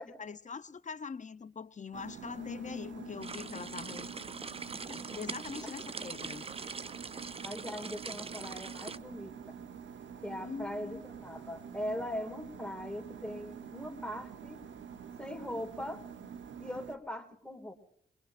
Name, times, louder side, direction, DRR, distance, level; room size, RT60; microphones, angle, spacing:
voice 1, 0.0-4.1 4.8-6.5 10.4-11.0, left 5 dB, 40° left, 0.7 m, -43 dB
sound 1, 1.9-17.0, right 7 dB, 80° right, 0.9 m, -47 dB
sound 2, 2.4-6.1, left 6 dB, 70° left, 0.8 m, -49 dB
sound 3, 3.2-9.0, right 4 dB, 30° right, 0.5 m, -43 dB
voice 2, 7.4-9.6 10.2-14.7 15.2-16.0 16.6-17.7, left 1 dB, 5° left, 2.1 m, -40 dB
22.5 x 20.5 x 2.6 m
supercardioid pair, 45°, 19 cm